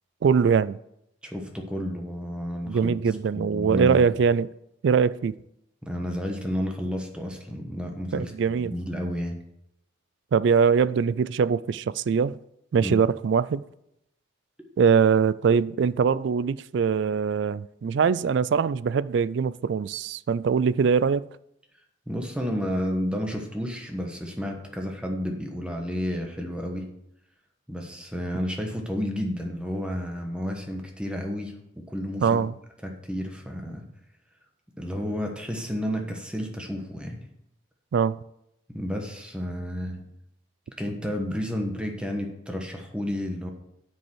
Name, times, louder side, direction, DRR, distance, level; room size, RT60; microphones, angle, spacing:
voice 1, 0.2-0.8 2.7-4.5 4.8-5.3 8.1-8.7 10.3-12.4 12.7-13.6 14.8-21.3 32.2-32.5 37.9-38.2, right 6 dB, 60° right, 0.3 m, -22 dB
voice 2, 1.2-4.0 5.8-9.4 12.8-12.9 22.1-26.9 27.7-31.6 31.9-32.4 32.8-33.8 34.8-37.2 38.7-40.0 40.8-43.5, equal, 5° right, 1.2 m, -31 dB
9.0 x 5.3 x 6.3 m
head